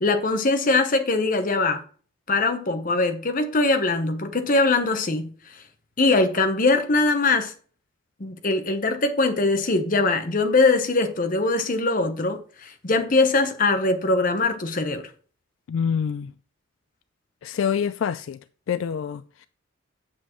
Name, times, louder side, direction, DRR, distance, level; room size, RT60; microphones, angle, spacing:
voice 1, 0.0-1.8 2.3-5.3 6.0-7.5 8.2-15.1, left 3 dB, 40° left, 0.9 m, -22 dB
voice 2, 15.7-16.3 17.4-18.4 18.7-19.5, left 7 dB, 70° left, 0.3 m, -26 dB
8.6 x 7.2 x 3.0 m
head